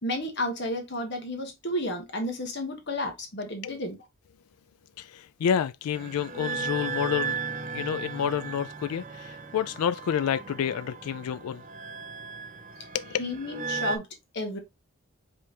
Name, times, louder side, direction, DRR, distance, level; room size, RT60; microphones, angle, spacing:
voice 1, 0.0-4.0 13.2-14.1 14.3-14.6, left 1 dB, 50° left, 1.4 m, -32 dB
voice 2, 5.0-7.4 7.7-11.6 12.9-13.2, left 8 dB, 85° left, 0.3 m, -29 dB
sound 1, 5.9-14.0, right 5 dB, 35° right, 0.6 m, -36 dB
5.4 x 3.4 x 2.8 m
head